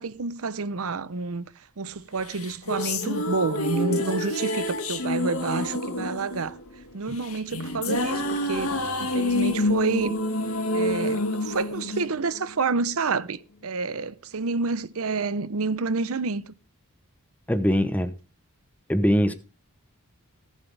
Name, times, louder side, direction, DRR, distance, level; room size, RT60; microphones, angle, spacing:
voice 1, 0.0-6.6 6.9-10.2 10.7-16.5, right 4 dB, 70° right, 0.7 m, -29 dB
sound 1, 2.3-12.7, left 1 dB, 75° left, 2.0 m, -28 dB
voice 2, 17.5-18.2 18.9-19.3, equal, 5° left, 0.8 m, -22 dB
18.0 x 7.4 x 3.4 m
head